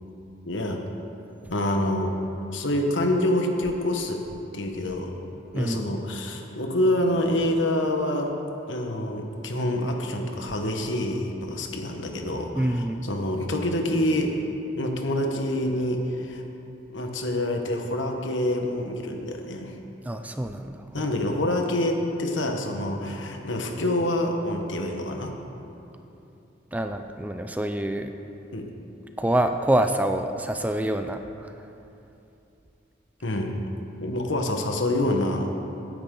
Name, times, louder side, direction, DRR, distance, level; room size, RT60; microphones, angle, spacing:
voice 1, 0.4-0.8 1.4-2.1 2.5-4.2 4.5-5.2 5.5-8.3 8.7-14.4 14.8-16.4 16.9-19.7 20.9-25.3 28.5-28.7 33.2-33.6 34.0-35.6, left 1 dB, 75° left, 3 dB, 1.3 m, -26 dB
voice 2, 5.5-6.0 12.6-13.1 20.0-20.8 26.7-28.1 29.2-31.5, right 1 dB, 10° right, 7 dB, 0.4 m, -26 dB
15.5 x 10.0 x 3.8 m, 2.9 s
head